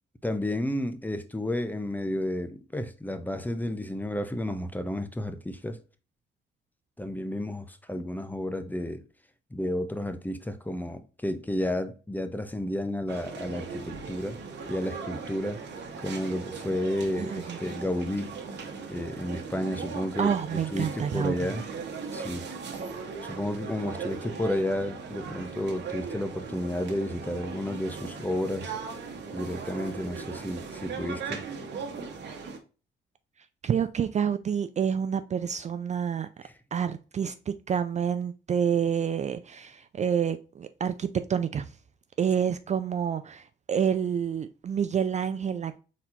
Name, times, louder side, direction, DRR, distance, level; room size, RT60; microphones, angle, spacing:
voice 1, 0.2-5.8 7.0-9.0 9.5-14.4 14.7-15.6 16.0-18.3 18.9-21.6 22.1-22.5 23.2-28.7 29.3-31.4 36.4-36.5, left 1 dB, 10° left, 0.6 m, -32 dB
sound 1, 13.1-32.6, right 5 dB, 60° right, 1.1 m, -38 dB
voice 2, 17.2-17.6 20.2-21.3 33.6-36.3 36.7-41.7 42.2-45.8, right 8 dB, 35° right, 0.4 m, -28 dB
4.2 x 4.2 x 2.4 m
cardioid pair, 90°, 20 cm